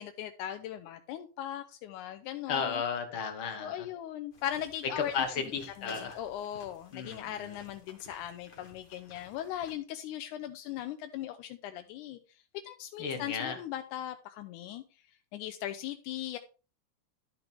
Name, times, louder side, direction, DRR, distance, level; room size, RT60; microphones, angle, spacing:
voice 1, 0.0-2.8 3.6-5.1 5.8-14.8 15.3-16.4, left 11 dB, 85° left, 8 dB, 2.1 m, -39 dB
voice 2, 2.5-3.7 5.0-6.2 6.9-7.5 13.0-13.6, left 6 dB, 55° left, 6 dB, 1.8 m, -34 dB
sound 1, 4.3-9.7, left 3 dB, 25° left, 1.1 m, -53 dB
12.0 x 5.9 x 3.4 m, 0.34 s
omnidirectional pair, 3.5 m